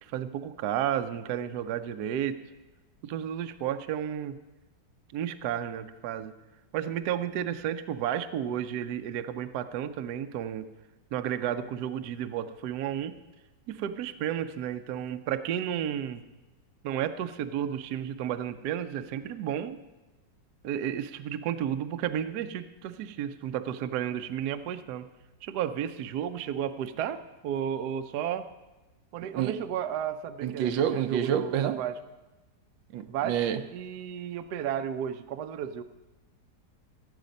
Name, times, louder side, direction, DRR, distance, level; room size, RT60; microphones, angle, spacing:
voice 1, 0.0-2.4 3.0-4.4 5.1-6.3 6.7-10.7 11.1-13.1 13.7-16.2 16.8-19.8 20.6-25.1 25.4-28.5 29.1-31.9 33.1-35.8, right 9 dB, 70° right, 1.1 m, -32 dB
voice 2, 30.4-31.8 32.9-33.6, right 9 dB, 85° right, 1.4 m, -28 dB
16.0 x 8.4 x 5.2 m
omnidirectional pair, 2.0 m